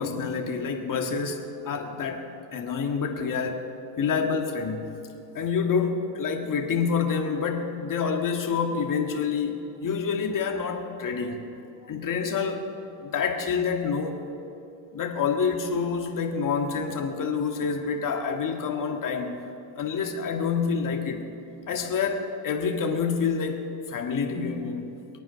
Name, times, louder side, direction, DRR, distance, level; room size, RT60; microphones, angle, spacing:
voice 1, 0.0-2.3 2.5-3.6 4.0-4.9 5.3-11.4 11.9-12.7 13.0-14.3 14.9-19.5 19.8-21.2 21.7-25.0, left 5 dB, 40° left, 3 dB, 2.0 m, -27 dB
23.5 x 9.0 x 5.8 m, 2.7 s
cardioid pair, 120°, 48 cm